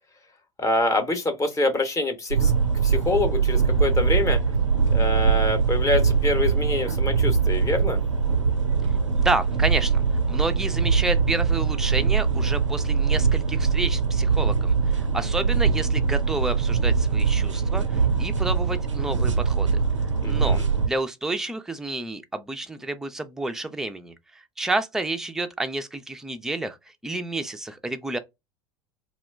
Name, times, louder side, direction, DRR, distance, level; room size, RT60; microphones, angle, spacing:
voice 1, 0.6-2.5 2.8-4.4 4.9-8.0 20.2-20.6, left 2 dB, 20° left, 0.7 m, -25 dB
sound 1, 2.3-20.9, right 5 dB, 90° right, 0.4 m, -22 dB
voice 2, 9.2-10.0 10.3-19.7 20.2-26.8 27.0-28.2, right 2 dB, 5° right, 0.3 m, -30 dB
2.3 x 2.1 x 3.3 m
figure-of-eight pair, 75°, 15 cm